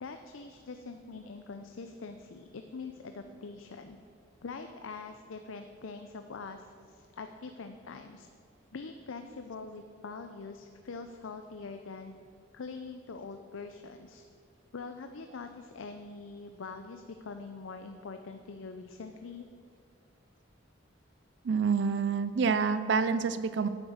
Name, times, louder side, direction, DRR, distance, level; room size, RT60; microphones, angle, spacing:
voice 1, 0.0-4.0 4.4-8.3 8.7-12.1 12.5-14.2 14.7-19.5, left 4 dB, 85° left, 7 dB, 0.5 m, -44 dB
voice 2, 21.4-23.7, right 5 dB, 60° right, 12 dB, 0.4 m, -27 dB
8.9 x 8.8 x 6.4 m, 2.2 s
head